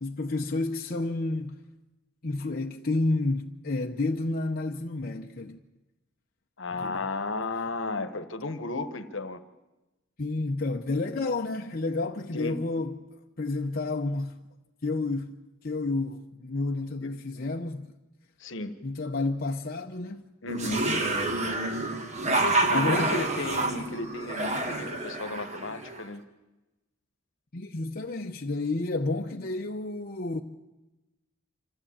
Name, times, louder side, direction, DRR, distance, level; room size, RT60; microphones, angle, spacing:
voice 1, 0.0-1.6 2.2-5.6 6.8-6.9 10.2-13.1 13.4-14.4 14.8-15.3 15.6-17.9 18.8-20.3 22.7-23.2 27.5-30.4, left 2 dB, 45° left, 0.7 m, -30 dB
voice 2, 6.6-9.4 12.3-12.6 17.0-17.1 18.4-18.7 20.4-21.0 22.4-26.2, left 2 dB, 60° left, 1.2 m, -34 dB
sound 1, 20.5-26.0, right 2 dB, 35° right, 1.7 m, -28 dB
26.0 x 13.5 x 8.7 m
head